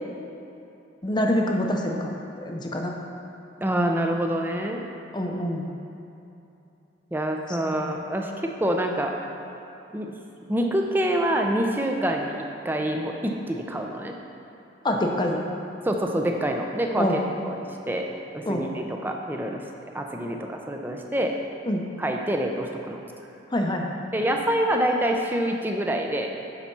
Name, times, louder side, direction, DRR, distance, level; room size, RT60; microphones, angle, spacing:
voice 1, 1.0-3.0 5.1-5.7 7.5-7.9 14.8-15.4 17.0-17.2 18.5-18.6 21.7-21.8 23.5-24.0, left 1 dB, 25° left, 1 dB, 0.7 m, -26 dB
voice 2, 3.6-4.8 7.1-9.2 9.9-10.1 10.4-14.1 15.9-17.6 17.9-18.1 18.3-19.6 19.9-21.4 22.0-23.0 24.1-26.3, right 1 dB, 10° right, 2 dB, 0.6 m, -26 dB
9.7 x 4.2 x 6.0 m, 2.8 s
head